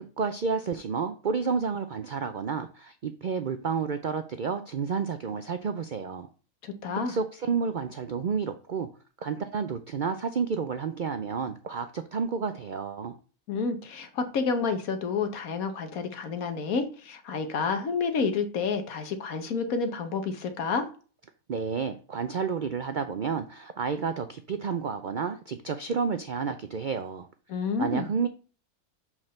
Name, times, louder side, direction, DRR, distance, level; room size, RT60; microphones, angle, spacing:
voice 1, 0.0-6.3 7.1-8.9 9.2-13.1 21.5-27.3 27.8-28.3, right 5 dB, 70° right, 9 dB, 0.4 m, -30 dB
voice 2, 6.6-7.2 13.5-20.9 27.5-28.1, left 5 dB, 70° left, 8 dB, 1.5 m, -29 dB
5.7 x 4.6 x 6.5 m, 0.38 s
omnidirectional pair, 1.6 m